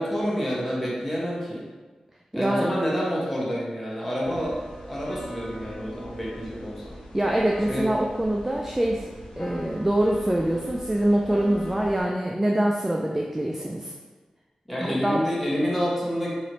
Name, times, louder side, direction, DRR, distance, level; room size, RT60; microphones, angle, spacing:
voice 1, 0.0-1.6 2.3-6.8 7.7-7.9 14.7-16.3, equal, 5° left, -7 dB, 1.1 m, -28 dB
voice 2, 2.3-2.7 7.1-9.1 9.4-13.9 14.8-15.2, right 1 dB, 15° right, -1 dB, 0.3 m, -24 dB
sound 1, 4.2-12.0, equal, 75° left, 0.8 m, -40 dB
3.0 x 2.7 x 3.0 m, 1.3 s
wide cardioid pair, 65°, 2 cm